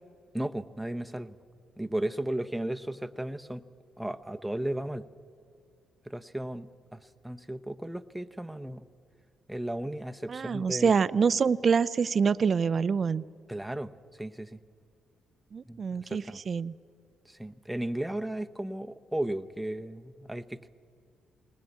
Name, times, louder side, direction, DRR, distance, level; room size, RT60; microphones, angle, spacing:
voice 1, 0.3-1.3 1.8-3.6 4.0-5.1 6.1-8.9 9.5-11.0 13.5-13.9 14.2-14.6 15.7-16.4 17.3-20.7, right 1 dB, 5° right, 9 dB, 0.7 m, -35 dB
voice 2, 10.3-13.2 15.5-16.7, right 6 dB, 45° right, 17 dB, 0.5 m, -26 dB
20.0 x 19.0 x 8.3 m, 2.3 s
cardioid pair, 90°, 0 cm